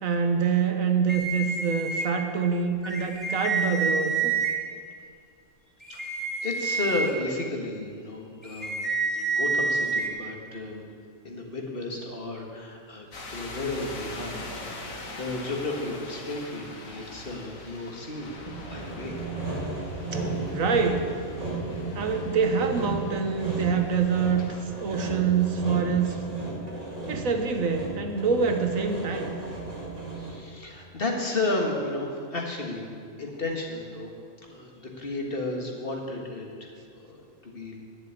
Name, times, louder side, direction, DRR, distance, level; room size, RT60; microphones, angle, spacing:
voice 1, 0.0-4.3 20.1-20.2 20.5-21.1 21.9-24.4 24.8-26.2 27.1-29.3, right 6 dB, 85° right, 6 dB, 1.5 m, -25 dB
sound 1, 1.1-2.0 2.8-4.5 5.8-7.1 8.4-10.1, right 4 dB, ahead, 1.8 m, -28 dB
voice 2, 6.3-8.8 9.1-10.8 11.2-14.5 14.8-18.3 18.7-19.2 30.1-32.9 33.2-34.1 34.5-37.8, left 2 dB, 45° left, 1 dB, 1.9 m, -33 dB
sound 2, 13.1-24.7, left 2 dB, 85° left, 1.9 m, -43 dB
Sawing, 18.5-30.5, right 2 dB, 30° right, 2.2 m, -35 dB
11.0 x 7.3 x 9.4 m, 2.2 s
omnidirectional pair, 1.4 m